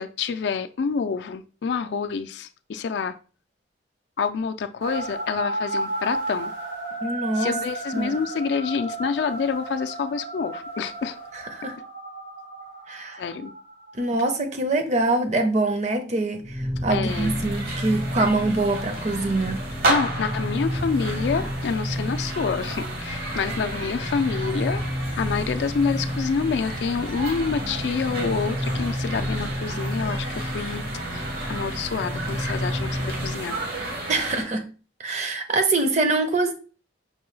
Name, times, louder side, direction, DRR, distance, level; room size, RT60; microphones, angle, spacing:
voice 1, 0.0-3.2 4.2-6.5 7.4-11.2 13.2-13.5 16.9-17.3 19.9-30.8 31.1-33.6, left 5 dB, 65° left, 0.3 m, -27 dB
sound 1, 4.8-14.3, right 2 dB, 75° right, 1.6 m, -33 dB
voice 2, 7.0-7.6 7.9-8.2 11.5-11.8 12.9-13.2 14.0-19.6 34.1-34.6 35.0-36.5, right 2 dB, 40° right, 0.6 m, -24 dB
sound 2, 16.4-33.4, equal, ahead, 0.4 m, -31 dB
sound 3, 17.1-34.4, right 2 dB, 55° right, 0.9 m, -33 dB
5.3 x 2.2 x 3.1 m
head